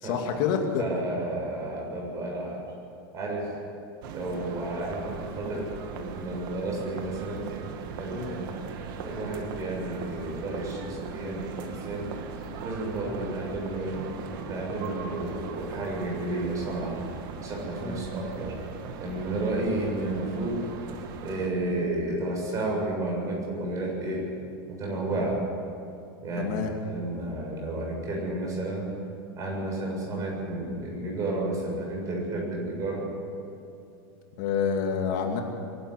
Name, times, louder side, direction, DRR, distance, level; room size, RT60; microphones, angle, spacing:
voice 1, 0.0-0.8 8.1-8.4 13.0-13.2 17.8-18.0 25.1-25.2 26.4-26.7 34.4-35.4, left 7 dB, 55° left, 3 dB, 2.6 m, -28 dB
voice 2, 0.8-2.7 3.1-3.5 4.1-7.5 8.0-8.6 9.0-12.1 12.6-14.0 14.4-17.0 17.4-18.6 19.0-20.7 21.2-24.2 24.7-25.3 26.2-28.9 29.4-33.0, right 2 dB, 25° right, -1 dB, 7.3 m, -32 dB
sound 1, 4.0-21.5, right 5 dB, 65° right, 2.2 m, -39 dB
23.0 x 12.5 x 9.9 m, 2.6 s
supercardioid pair, 150°, 12 cm